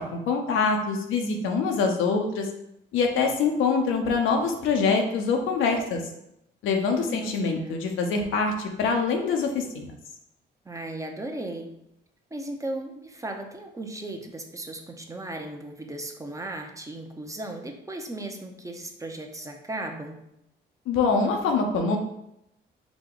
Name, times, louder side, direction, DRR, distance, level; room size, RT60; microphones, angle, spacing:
voice 1, 0.0-2.5 2.9-6.0 6.6-9.9 20.9-22.0, left 4 dB, 90° left, 3 dB, 0.7 m, -24 dB
voice 2, 7.0-7.8 10.6-11.7 12.3-20.2, right 2 dB, 15° right, 3 dB, 0.6 m, -36 dB
4.9 x 2.2 x 3.8 m, 0.81 s
cardioid pair, 90°, 20 cm